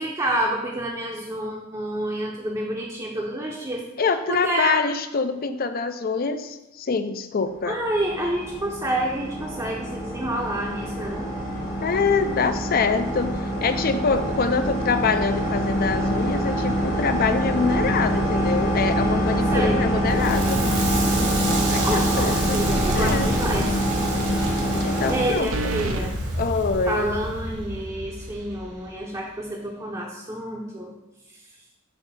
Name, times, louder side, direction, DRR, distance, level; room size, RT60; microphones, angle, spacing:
voice 1, 0.0-3.9 4.3-4.8 7.7-11.3 19.5-19.8 21.8-23.8 25.1-26.2 26.9-30.9, right 1 dB, 20° right, -3 dB, 0.7 m, -28 dB
voice 2, 4.0-7.8 11.8-20.6 21.7-22.7 22.9-23.3 24.8-25.5 26.4-27.1, left 4 dB, 45° left, 10 dB, 0.5 m, -25 dB
sound 1, 7.7-25.3, equal, 70° left, 2.1 m, -25 dB
Crackle, 20.1-29.0, right 2 dB, 60° right, 1.3 m, -29 dB
sound 2, 25.5-26.0, right 2 dB, 85° right, 0.7 m, -29 dB
7.7 x 2.7 x 5.6 m, 0.97 s
head